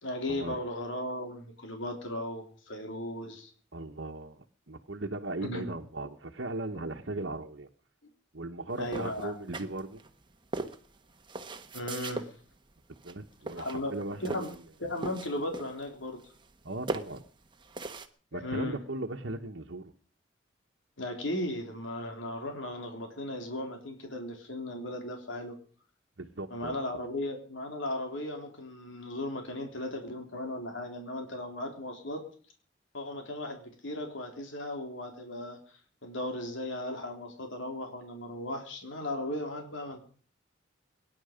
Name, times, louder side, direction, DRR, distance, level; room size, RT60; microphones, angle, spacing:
voice 1, 0.0-3.5 5.4-5.7 8.8-9.3 11.7-12.4 13.6-13.9 14.2-14.5 14.8-16.3 18.3-18.8 21.0-25.6 26.5-32.2 32.9-40.0, left 1 dB, 75° left, 3 dB, 3.6 m, -36 dB
voice 2, 3.7-7.7 8.3-10.0 13.0-14.5 16.6-17.2 18.3-19.9 26.2-26.8, right 2 dB, 70° right, 1 dB, 1.3 m, -38 dB
sound 1, 8.9-10.1 10.5-12.3 13.0-13.2 13.5-14.6 14.9-15.9 16.2-16.6 16.9-18.1, right 2 dB, 25° right, 1.3 m, -38 dB
23.5 x 11.0 x 5.2 m, 0.42 s
head